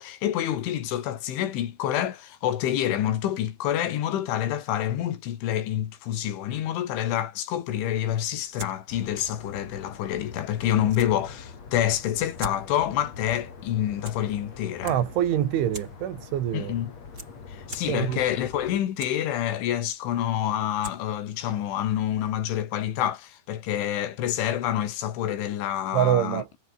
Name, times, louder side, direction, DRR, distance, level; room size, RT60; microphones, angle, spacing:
voice 1, 0.0-15.0 16.5-16.9 17.5-26.4, left 11 dB, 85° left, 4.7 m, -27 dB
sound 1, 8.2-22.6, right 2 dB, 20° right, 7.6 m, -48 dB
sound 2, 8.9-18.8, left 5 dB, 35° left, 4.6 m, -44 dB
voice 2, 14.8-16.7 17.9-18.2 25.9-26.5, right 11 dB, 80° right, 4.7 m, -25 dB
omnidirectional pair, 5.4 m